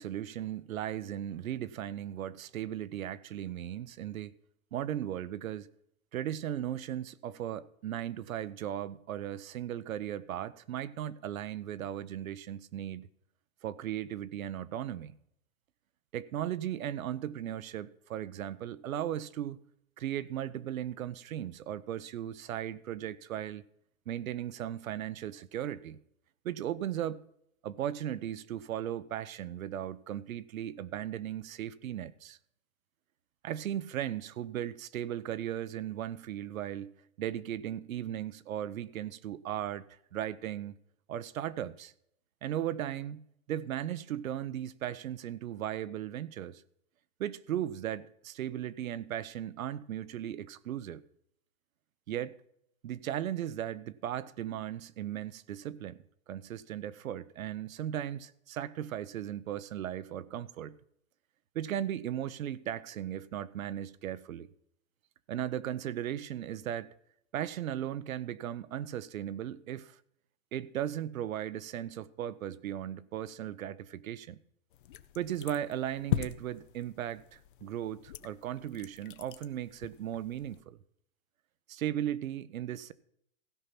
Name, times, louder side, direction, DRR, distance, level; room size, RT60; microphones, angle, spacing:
voice 1, 0.0-4.4 4.7-5.7 6.1-13.1 13.6-15.1 16.1-19.6 20.0-23.6 24.1-26.0 26.4-27.3 27.6-32.4 33.4-36.9 37.2-39.8 40.1-40.8 41.1-41.9 42.4-43.2 43.5-46.6 47.2-51.0 52.1-52.4 52.8-56.0 56.3-60.8 61.5-64.5 65.3-66.9 67.3-70.0 70.5-74.4 75.1-80.8 81.7-82.9, right 11 dB, 80° right, 0.8 m, -37 dB
sound 1, 74.7-80.6, left 12 dB, 40° left, 0.5 m, -40 dB
16.0 x 5.6 x 5.9 m
hypercardioid pair, 155°, 41 cm